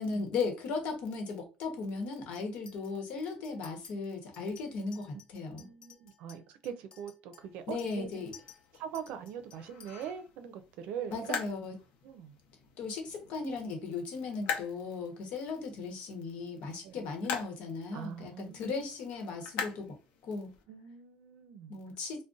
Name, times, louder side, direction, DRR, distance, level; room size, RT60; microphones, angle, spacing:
voice 1, 0.0-5.7 7.7-8.3 11.1-11.8 12.8-19.9 20.2-20.5 21.7-22.2, left 4 dB, 65° left, 1.0 m, -37 dB
Chink clink, 2.3-2.9 3.2-3.9 4.3-10.1, left 7 dB, 40° left, 0.7 m, -56 dB
voice 2, 5.5-8.1 8.8-11.4 12.0-12.3 16.8-17.0 17.9-18.8 20.7-21.8, right 8 dB, 80° right, 0.5 m, -42 dB
sound 1, 7.4-20.6, left 7 dB, 90° left, 0.7 m, -44 dB
2.4 x 2.1 x 3.8 m
cardioid pair, 160°, 2 cm